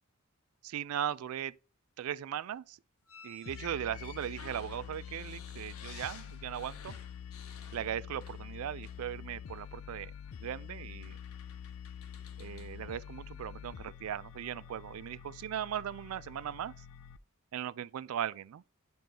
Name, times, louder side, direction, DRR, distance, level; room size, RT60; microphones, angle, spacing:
voice 1, 0.6-1.6 2.0-2.8 3.2-7.0 7.7-10.1 10.4-11.2 12.4-16.7 17.5-18.6, right 10 dB, 80° right, 0.3 m, -38 dB
sound 1, 3.1-8.5 8.8-9.1 10.3-10.4 11.0-12.8, left 6 dB, 85° left, 1.2 m, -53 dB
sound 2, 3.5-17.2, left 8 dB, 70° left, 0.4 m, -47 dB
9.3 x 5.2 x 2.8 m
head